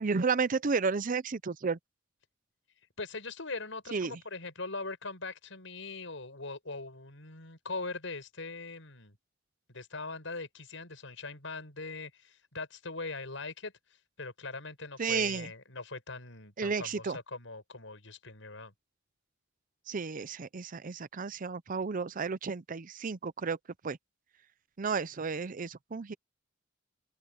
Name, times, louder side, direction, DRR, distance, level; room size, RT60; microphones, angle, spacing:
voice 1, 0.0-1.8 3.9-4.1 15.0-15.5 16.6-17.2 19.9-23.6 23.8-24.0 24.8-26.1, right 5 dB, 45° right, 0.6 m, -32 dB
voice 2, 3.0-9.2 9.7-13.7 14.2-18.7, left 3 dB, 90° left, 5.8 m, -41 dB
open air
head